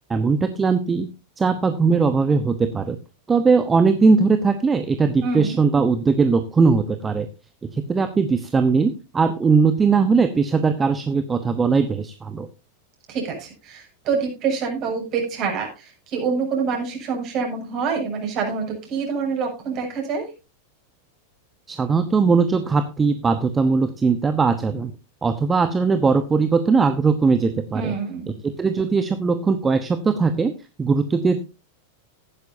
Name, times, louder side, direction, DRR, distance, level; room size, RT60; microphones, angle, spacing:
voice 1, 0.1-1.1 1.4-3.0 3.3-7.3 7.7-12.5 21.7-24.9 25.2-27.9 28.4-30.5 30.8-31.4, right 4 dB, 15° right, 10 dB, 1.0 m, -19 dB
voice 2, 5.2-5.6 13.1-20.3 27.7-28.3, right 5 dB, 35° right, 1 dB, 7.1 m, -26 dB
15.5 x 11.5 x 2.7 m, 0.28 s
figure-of-eight pair, 90°, 0 cm